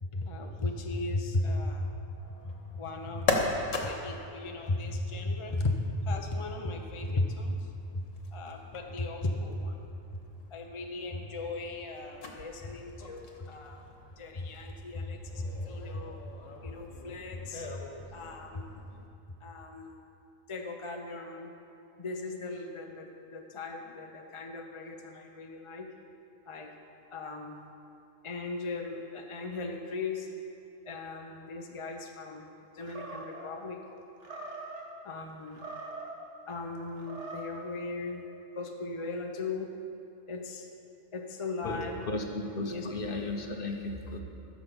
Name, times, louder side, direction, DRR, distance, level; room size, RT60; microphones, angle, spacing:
voice 1, 0.0-2.1 2.4-7.6 7.9-8.0 8.3-9.8 10.5-13.9 14.2-16.2 16.6-17.8 18.1-18.7 19.4-20.0 20.5-21.5 22.0-25.9 26.5-26.7 27.1-27.6 28.2-30.3 30.8-32.5 32.7-33.8 35.0-35.7 36.5-38.2 38.6-39.7 40.3-40.7 41.1-42.0 42.6-42.9, left 2 dB, 30° left, 2 dB, 0.7 m, -36 dB
sound 1, 2.1-19.1, left 3 dB, 75° left, 1.6 m, -40 dB
Animal, 32.8-33.5 34.2-34.9 35.5-36.2 36.9-37.6, right 3 dB, 65° right, 1.6 m, -42 dB
voice 2, 41.6-44.2, left 2 dB, 50° left, 3 dB, 1.1 m, -35 dB
13.5 x 6.1 x 7.0 m, 2.7 s
omnidirectional pair, 1.3 m